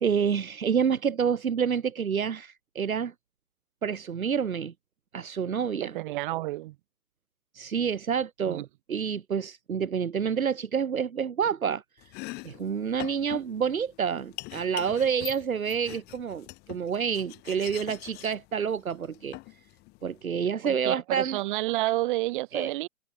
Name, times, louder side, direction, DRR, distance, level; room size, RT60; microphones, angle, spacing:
voice 1, 0.0-3.1 3.8-4.7 5.1-6.0 7.5-12.1 12.4-19.6 20.0-21.4 22.5-22.7, right 7 dB, 65° right, 2.1 m, -28 dB
voice 2, 5.8-6.8 8.5-8.7 20.6-22.9, right 18 dB, 35° right, 7.2 m, -30 dB
Domestic sounds home sounds, 12.0-20.2, left 23 dB, 20° left, 3.9 m, -43 dB
figure-of-eight pair, 135°, 46 cm